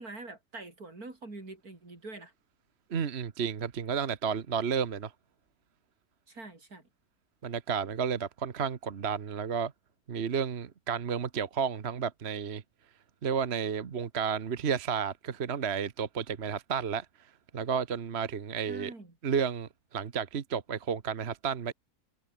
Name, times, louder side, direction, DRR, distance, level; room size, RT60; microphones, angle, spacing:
voice 1, 0.0-2.3 6.3-6.8 18.7-19.1, right 2 dB, 80° right, 5.5 m, -44 dB
voice 2, 2.9-5.1 7.4-9.7 10.1-12.6 13.2-17.1 17.5-18.9 19.2-21.7, right 7 dB, 50° right, 1.3 m, -32 dB
omnidirectional pair, 1.5 m